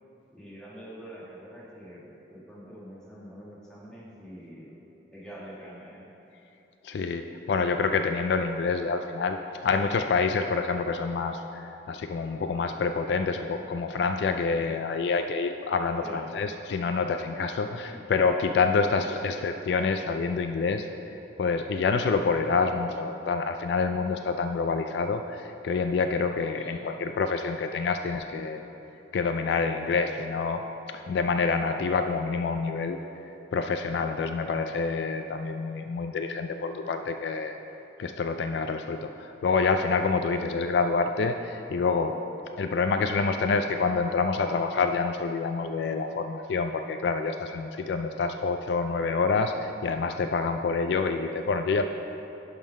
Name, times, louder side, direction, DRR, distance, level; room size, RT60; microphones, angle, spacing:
voice 1, 0.3-4.8 5.1-6.1 16.0-16.2 17.6-18.0 18.9-19.3 26.5-26.8, equal, 5° left, -8 dB, 1.5 m, -45 dB
voice 2, 6.8-20.9 21.4-28.6 29.1-33.0 33.5-37.6 38.0-42.2 42.6-51.8, left 4 dB, 65° left, 6 dB, 0.3 m, -27 dB
10.5 x 3.8 x 5.3 m, 3.0 s
head